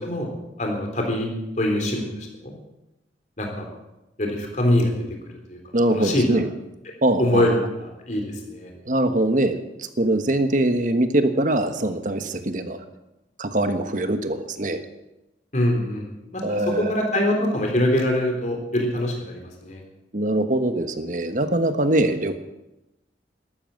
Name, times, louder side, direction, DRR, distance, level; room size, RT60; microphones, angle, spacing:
voice 1, 0.6-1.3 1.6-2.5 3.4-3.7 4.2-4.9 5.5-5.6 5.9-6.4 7.2-8.7 15.5-19.8, left 1 dB, 40° left, 2 dB, 3.5 m, -24 dB
voice 2, 5.7-6.4 7.0-7.5 8.8-12.8 13.4-14.8 16.4-16.9 20.1-22.4, right 1 dB, 45° right, 8 dB, 1.3 m, -22 dB
13.0 x 12.5 x 7.7 m, 0.96 s
head